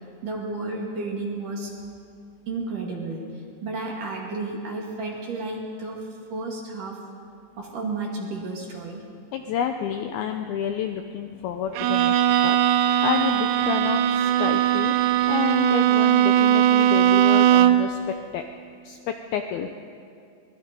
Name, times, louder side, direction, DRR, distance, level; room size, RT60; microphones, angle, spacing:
voice 1, 0.2-1.7 2.5-3.3 3.6-7.0 7.6-9.1, right 3 dB, 50° right, -1 dB, 3.7 m, -32 dB
voice 2, 9.3-12.2 12.4-14.9 15.3-18.4 18.8-19.7, left 8 dB, 85° left, 5 dB, 2.2 m, -29 dB
Bowed string instrument, 11.7-18.0, right 11 dB, 90° right, 3.2 m, -19 dB
24.0 x 20.5 x 5.3 m, 2.4 s
omnidirectional pair, 5.2 m